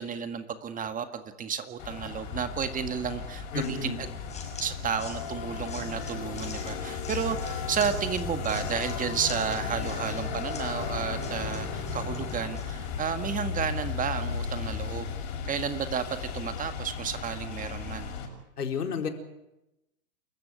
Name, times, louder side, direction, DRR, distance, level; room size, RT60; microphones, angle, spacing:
voice 1, 0.0-4.1 4.6-15.1 15.5-18.1, right 7 dB, 15° right, 9 dB, 1.8 m, -32 dB
sound 1, 1.8-18.3, left 6 dB, 45° left, 6.8 m, -35 dB
voice 2, 3.5-4.0 18.6-19.1, left 6 dB, 85° left, 4 dB, 4.5 m, -31 dB
sound 2, 3.6-12.7, left 5 dB, 15° left, 5.9 m, -45 dB
28.5 x 14.5 x 9.6 m, 0.91 s
hypercardioid pair, 130°, 45 cm